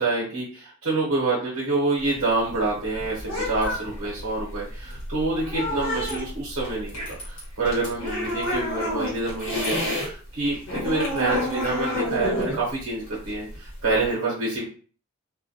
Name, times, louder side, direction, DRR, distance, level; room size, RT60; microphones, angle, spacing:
voice 1, 0.0-14.7, right 2 dB, 75° right, -5 dB, 0.8 m, -27 dB
sound 1, 2.0-10.1 10.4-14.1, left 1 dB, 65° left, 1.1 m, -29 dB
2.2 x 2.1 x 2.6 m, 0.42 s
head